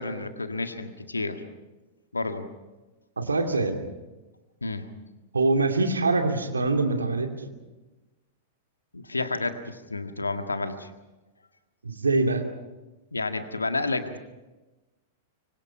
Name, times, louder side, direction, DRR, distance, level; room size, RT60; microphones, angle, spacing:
voice 1, 0.0-1.4 2.1-2.5 4.6-4.9 8.9-10.9 13.1-14.2, left 3 dB, 85° left, 7 dB, 1.8 m, -30 dB
voice 2, 3.2-3.8 5.3-7.3 11.8-12.4, right 3 dB, 80° right, 4 dB, 2.7 m, -24 dB
25.0 x 24.5 x 5.9 m, 1.1 s
figure-of-eight pair, 100°, 0 cm